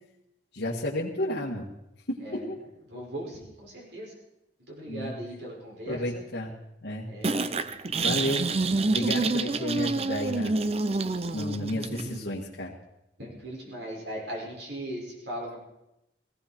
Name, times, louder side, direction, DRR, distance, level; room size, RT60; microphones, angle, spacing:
voice 1, 0.5-1.7 2.1-2.6 4.9-5.1 5.9-6.5 6.8-7.1 8.0-8.5 8.8-10.5 11.3-12.7, left 1 dB, 75° left, -6 dB, 1.8 m, -32 dB
voice 2, 2.9-4.1 4.7-6.2 7.1-7.7 8.4-9.0 13.2-15.6, right 1 dB, 75° right, -2 dB, 5.7 m, -39 dB
sound 1, 7.2-12.2, right 3 dB, 35° right, 0.6 m, -28 dB
18.0 x 16.0 x 4.5 m, 0.88 s
head